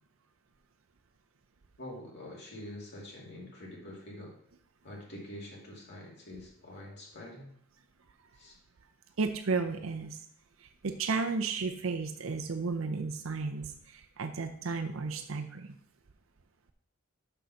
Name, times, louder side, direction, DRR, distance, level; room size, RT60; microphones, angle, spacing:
voice 1, 1.8-4.3 4.8-7.5 8.4-8.5, left 1 dB, 55° left, -2 dB, 2.5 m, -46 dB
voice 2, 9.2-10.2 10.8-15.7, right 4 dB, 80° right, 6 dB, 0.6 m, -33 dB
6.3 x 5.6 x 5.6 m, 0.66 s
head